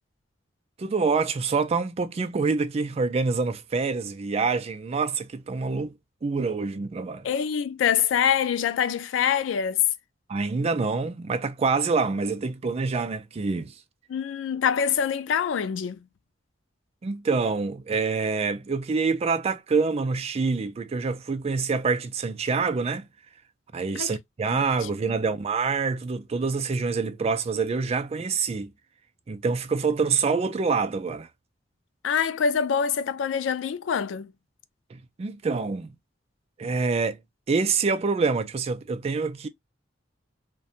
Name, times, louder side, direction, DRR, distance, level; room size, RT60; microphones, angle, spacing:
voice 1, 0.8-5.9 6.2-7.3 10.3-13.7 17.0-23.1 23.7-28.7 29.3-31.3 34.9-35.9 36.6-37.2 37.5-39.5, right 4 dB, 35° right, 0.3 m, -26 dB
voice 2, 7.2-9.8 14.1-16.0 24.0-24.1 24.5-24.9 32.0-34.3, left 7 dB, 80° left, 0.3 m, -25 dB
2.5 x 2.1 x 2.7 m
head